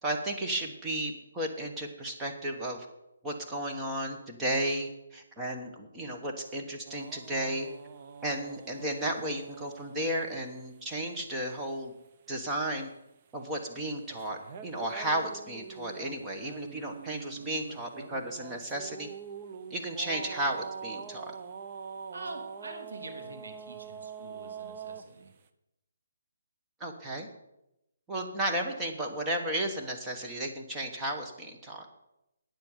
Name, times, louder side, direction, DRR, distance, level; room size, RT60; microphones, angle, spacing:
voice 1, 0.0-2.9 3.2-7.7 8.2-11.9 12.3-12.9 13.3-19.1 19.7-21.2 26.8-27.3 28.1-31.8, right 1 dB, 10° right, 1 dB, 1.2 m, -34 dB
sound 1, 6.9-10.1 14.1-25.0, right 6 dB, 30° right, 0.7 m, -44 dB
voice 2, 22.1-25.3, right 3 dB, 85° right, 5 dB, 2.6 m, -44 dB
9.3 x 7.7 x 7.3 m, 0.87 s
hypercardioid pair, 165°, 0 cm